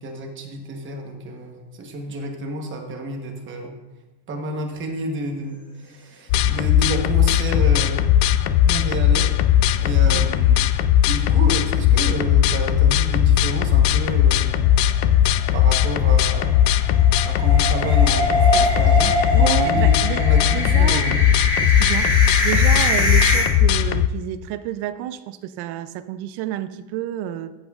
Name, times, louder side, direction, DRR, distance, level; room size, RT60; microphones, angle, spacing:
voice 1, 0.0-3.8 4.3-8.1 8.7-9.3 9.8-10.7 11.1-14.8 15.5-16.6 17.2-21.2, right 2 dB, 25° right, 2 dB, 1.0 m, -30 dB
sound 1, 6.3-24.1, left 11 dB, 60° left, 0.5 m, -18 dB
sound 2, 8.5-9.4 9.7-9.8 10.2-10.3 14.4-23.4, equal, 15° left, 1.9 m, -24 dB
voice 2, 19.3-21.2 21.6-27.5, right 12 dB, 55° right, 12 dB, 0.5 m, -30 dB
13.0 x 8.1 x 2.4 m, 1.1 s
cardioid pair, 175°, 49 cm